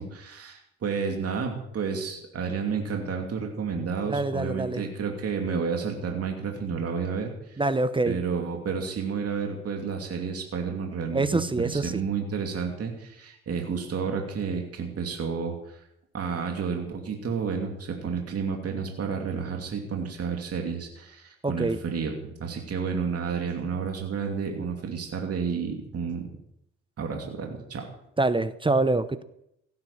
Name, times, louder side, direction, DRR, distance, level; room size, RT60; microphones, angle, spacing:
voice 1, 0.0-7.6 8.0-15.8 16.1-26.2 27.0-27.9, right 5 dB, 55° right, 2 dB, 2.7 m, -31 dB
voice 2, 4.1-4.8 7.6-8.2 11.1-12.0 21.4-21.8 28.2-29.2, right 2 dB, 15° right, 13 dB, 0.8 m, -25 dB
16.5 x 9.6 x 7.2 m, 0.79 s
cardioid pair, 90°, 30 cm